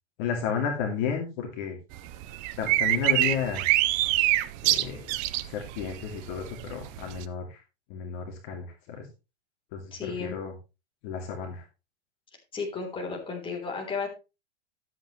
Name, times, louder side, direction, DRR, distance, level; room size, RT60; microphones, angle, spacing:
voice 1, 0.2-1.8 2.6-3.6 4.6-5.1 5.5-7.6 7.9-9.1 9.7-10.5 11.0-11.6, left 7 dB, 45° left, 2 dB, 2.6 m, -32 dB
sound 1, 1.9-7.2, right 16 dB, 25° right, 0.4 m, -26 dB
voice 2, 9.9-10.4 12.5-14.1, left 4 dB, 15° left, 0 dB, 3.3 m, -33 dB
13.0 x 8.2 x 3.1 m, 0.27 s
supercardioid pair, 150°, 34 cm